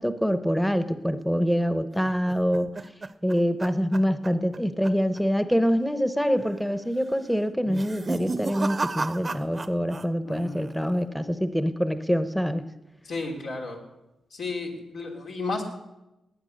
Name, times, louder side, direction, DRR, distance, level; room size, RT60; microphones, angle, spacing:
voice 1, 0.0-2.8 3.2-12.6, equal, 5° left, 11 dB, 0.9 m, -25 dB
sound 1, 2.1-4.6 4.8-5.2 5.5-5.6 6.4-6.8 7.6-10.1 10.3-10.9, right 3 dB, 35° right, 0.7 m, -33 dB
voice 2, 10.2-10.6 13.0-13.8 14.3-15.6, left 3 dB, 85° left, -1 dB, 3.3 m, -33 dB
20.0 x 8.9 x 6.5 m, 0.96 s
cardioid pair, 75°, 0 cm